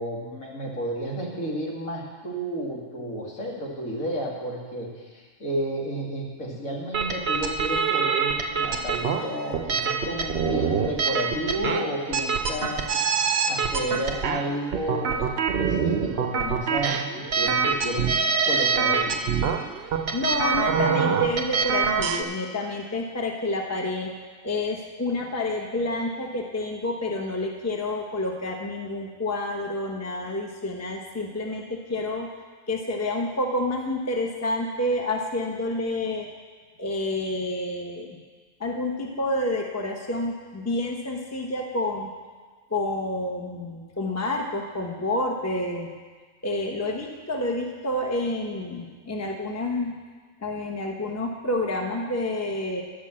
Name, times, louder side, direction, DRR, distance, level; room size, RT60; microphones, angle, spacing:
voice 1, 0.0-12.9 13.2-15.3 15.6-18.1 18.4-19.2, right 1 dB, 75° left, -3 dB, 2.6 m, -31 dB
sound 1, 6.9-22.2, right 6 dB, 55° right, 0.8 m, -25 dB
voice 2, 20.1-24.1 24.4-32.3 32.7-36.3 36.8-38.2 38.6-42.1 42.7-45.9 46.4-49.9 50.4-52.8, left 2 dB, 15° left, 1 dB, 0.9 m, -29 dB
11.0 x 6.4 x 8.6 m, 1.5 s
omnidirectional pair, 1.5 m